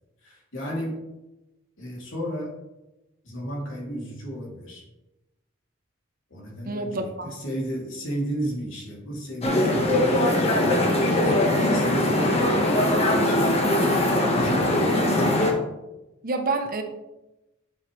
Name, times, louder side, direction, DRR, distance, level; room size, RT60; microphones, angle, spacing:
voice 1, 0.2-1.0 1.8-2.6 3.2-4.8 6.3-14.1 14.4-15.0, equal, 70° left, -3 dB, 3.2 m, -34 dB
voice 2, 6.6-7.3 16.2-16.8, right 3 dB, 45° right, 5 dB, 1.0 m, -28 dB
sound 1, 9.4-15.5, left 1 dB, 30° left, 1.6 m, -21 dB
11.0 x 7.3 x 3.4 m, 0.98 s
head